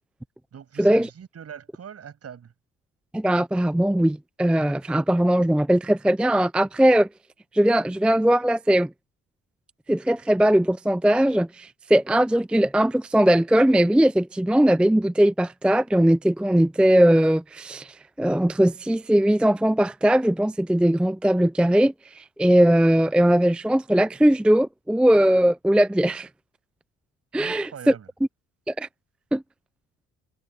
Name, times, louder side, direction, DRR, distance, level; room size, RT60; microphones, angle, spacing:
voice 1, 0.5-2.5 27.4-28.1, right 8 dB, 55° right, 7.2 m, -42 dB
voice 2, 3.1-7.1 7.5-8.9 9.9-26.3 27.3-27.9 28.7-28.9 29.3-29.4, right 1 dB, 5° right, 0.4 m, -20 dB
cardioid pair, 90°, 30 cm